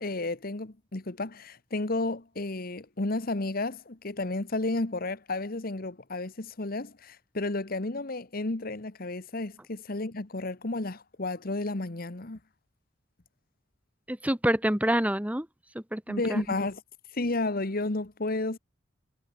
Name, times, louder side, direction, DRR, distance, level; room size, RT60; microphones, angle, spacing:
voice 1, 0.0-12.4 16.1-16.8 17.1-18.6, left 2 dB, 50° left, 1.4 m, -32 dB
voice 2, 14.1-15.5 15.7-16.4, right 1 dB, 10° right, 1.7 m, -27 dB
head